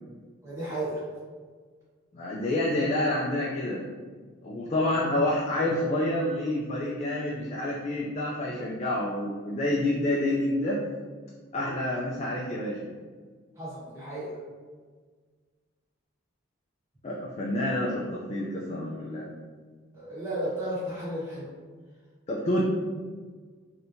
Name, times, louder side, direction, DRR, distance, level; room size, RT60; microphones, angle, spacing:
voice 1, 0.4-1.0 13.6-14.3 19.9-21.5, right 1 dB, 15° right, -10 dB, 1.1 m, -33 dB
voice 2, 2.1-3.9 4.4-10.8 11.5-12.9 17.0-19.3 22.3-22.7, left 1 dB, 35° left, -4 dB, 0.3 m, -28 dB
3.5 x 2.8 x 2.6 m, 1.5 s
head